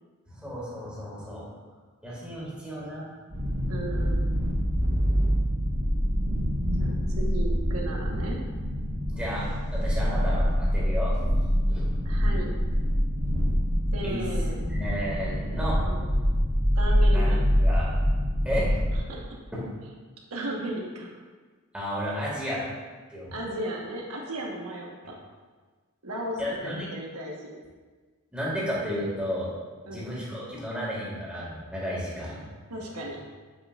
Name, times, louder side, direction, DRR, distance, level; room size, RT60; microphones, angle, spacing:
voice 1, 0.3-1.5 2.0-3.0 9.1-11.9 14.0-14.2 14.7-15.8 16.3-16.4 17.1-17.9 18.4-18.7 19.5-19.7 21.7-22.6 23.1-23.3 26.4-26.8 28.3-29.5 29.9-32.4, equal, 5° right, -7 dB, 1.8 m, -33 dB
sound 1, 3.3-19.0, equal, 50° right, 1.9 m, -25 dB
voice 2, 3.7-4.3 6.8-8.4 12.0-12.5 13.9-14.6 15.3-16.1 16.8-17.4 19.1-19.2 20.3-21.1 23.3-25.1 26.0-27.5 29.8-30.1 32.7-33.2, right 1 dB, 90° right, -1 dB, 1.2 m, -35 dB
7.9 x 5.4 x 2.4 m, 1.4 s
head